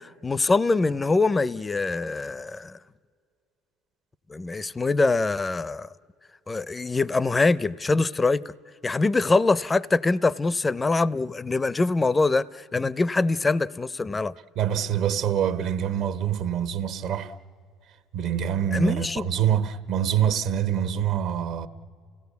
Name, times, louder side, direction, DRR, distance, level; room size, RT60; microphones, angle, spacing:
voice 1, 0.0-2.8 4.3-5.9 6.5-8.5 8.8-14.3 18.7-19.3, left 3 dB, 20° left, 0.5 m, -24 dB
voice 2, 14.6-17.3 18.1-21.7, right 9 dB, 65° right, 1.0 m, -25 dB
29.0 x 17.0 x 8.2 m
supercardioid pair, 100°, 0 cm